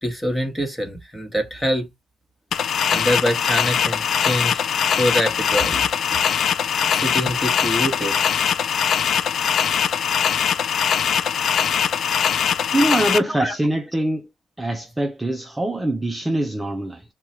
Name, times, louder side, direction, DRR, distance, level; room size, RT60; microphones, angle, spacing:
voice 1, 0.0-1.9 2.9-4.6 5.0-6.2 6.9-8.3 13.3-13.5, equal, 10° left, 1.3 m, -25 dB
sound 1, 2.5-13.2, left 8 dB, 60° left, 0.4 m, -21 dB
voice 2, 12.4-14.2 14.6-17.0, right 1 dB, 15° right, 0.5 m, -24 dB
2.9 x 2.3 x 4.2 m
cardioid pair, 90°, 0 cm